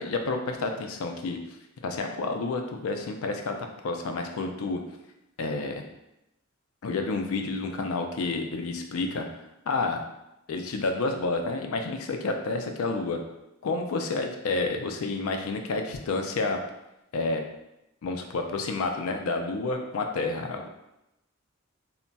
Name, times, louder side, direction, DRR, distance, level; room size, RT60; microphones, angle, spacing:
voice 1, 0.0-1.4 1.8-4.8 5.4-5.8 6.8-9.3 9.7-10.0 10.5-13.2 13.6-16.6 17.1-17.4 18.0-20.7, left 3 dB, 75° left, 4 dB, 0.4 m, -29 dB
2.2 x 2.2 x 3.9 m, 0.89 s
head